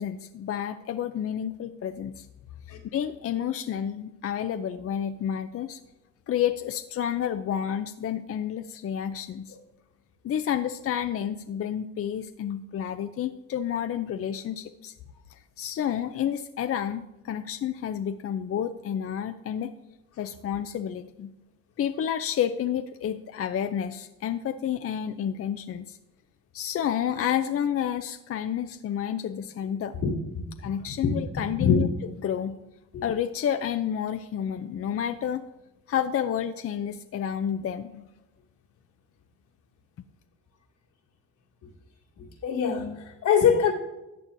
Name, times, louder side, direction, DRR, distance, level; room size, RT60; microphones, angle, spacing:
voice 1, 0.0-2.3 2.9-5.8 6.3-9.6 10.2-14.9 15.3-19.7 20.2-21.3 21.8-26.0 26.5-29.9 30.6-31.9 32.2-32.6 33.0-35.4 35.9-38.1, left 9 dB, 50° left, 9 dB, 0.5 m, -30 dB
voice 2, 42.2-43.7, left 7 dB, 85° left, -2 dB, 2.4 m, -23 dB
14.0 x 8.5 x 2.6 m, 1.0 s
cardioid pair, 90°, 30 cm